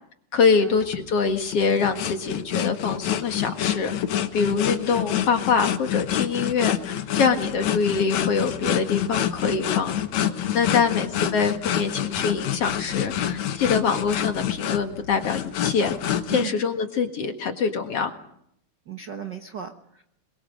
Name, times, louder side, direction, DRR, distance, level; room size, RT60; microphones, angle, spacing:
voice 1, 0.3-3.9 4.3-10.0 10.5-15.9 16.3-18.1, left 5 dB, 55° left, 5 dB, 2.6 m, -24 dB
sound 1, 0.8-16.5, left 10 dB, 70° left, 2.4 m, -27 dB
voice 2, 10.6-11.0 16.3-16.5 18.9-20.0, right 8 dB, 55° right, 5 dB, 1.2 m, -36 dB
25.5 x 23.0 x 6.5 m, 0.74 s
omnidirectional pair, 3.5 m